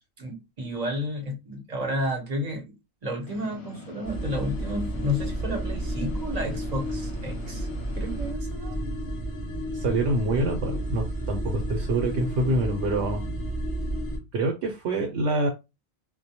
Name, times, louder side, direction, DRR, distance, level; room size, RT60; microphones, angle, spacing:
voice 1, 0.2-2.8 3.0-7.7 7.9-8.8, left 1 dB, 35° right, 0.7 m, -31 dB
sound 1, 3.3-8.3, left 1 dB, 60° left, 0.8 m, -44 dB
sound 2, 4.0-14.2, right 1 dB, 25° left, 0.9 m, -31 dB
voice 2, 9.7-13.2 14.3-15.5, right 2 dB, 65° right, 0.8 m, -26 dB
2.2 x 2.1 x 2.7 m
omnidirectional pair, 1.4 m